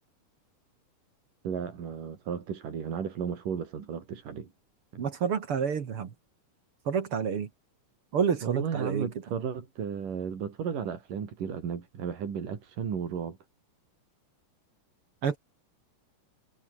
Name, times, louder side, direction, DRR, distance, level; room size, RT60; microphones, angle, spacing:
voice 1, 1.4-4.5 4.9-5.1 8.4-13.4, right 7 dB, 90° right, 4.9 m, -34 dB
voice 2, 5.0-6.1 6.9-7.5 8.1-9.1 15.2-15.4, right 7 dB, 50° right, 2.4 m, -28 dB
omnidirectional pair, 3.7 m